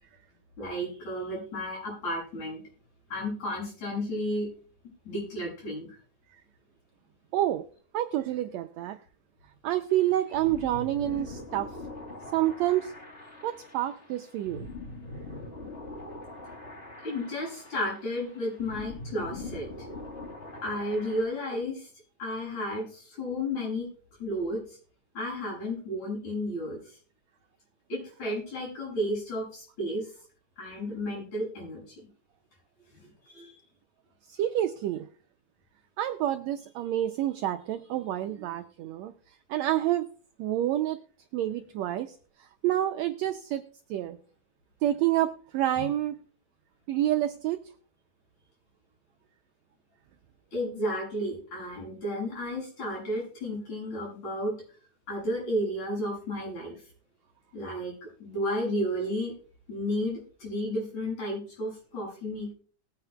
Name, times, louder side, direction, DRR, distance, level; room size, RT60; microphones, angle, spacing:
voice 1, 0.6-2.6 3.1-4.5 5.1-6.0 17.0-19.7 20.6-21.9 22.2-23.9 24.2-24.6 25.2-27.0 27.9-30.1 30.6-32.1 33.0-33.5 45.8-45.9 50.5-54.5 55.1-56.8 57.5-57.9 58.2-59.3 59.7-62.5, equal, 65° left, -4 dB, 8.7 m, -32 dB
voice 2, 7.3-7.6 7.9-9.0 9.6-11.7 12.3-12.9 13.4-14.7 34.3-35.1 36.0-39.1 39.5-40.1 40.4-41.0 41.3-42.2 42.6-43.6 43.9-44.2 44.8-46.2 46.9-47.6, right 13 dB, 85° right, 7 dB, 1.6 m, -28 dB
sound 1, 9.9-21.2, left 2 dB, 25° left, 1.3 m, -43 dB
20.0 x 9.1 x 2.3 m, 0.42 s
omnidirectional pair, 3.7 m